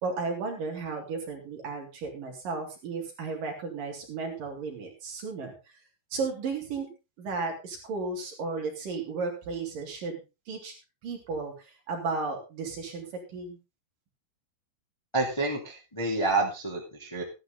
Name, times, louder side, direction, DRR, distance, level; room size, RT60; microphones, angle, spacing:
voice 1, 0.0-5.5 6.1-6.9 7.2-10.2 10.5-10.7 11.0-13.6, right 4 dB, 55° right, 1 dB, 4.8 m, -34 dB
voice 2, 15.1-17.2, right 2 dB, 10° left, 0 dB, 2.0 m, -28 dB
14.5 x 11.5 x 3.9 m, 0.29 s
omnidirectional pair, 4.8 m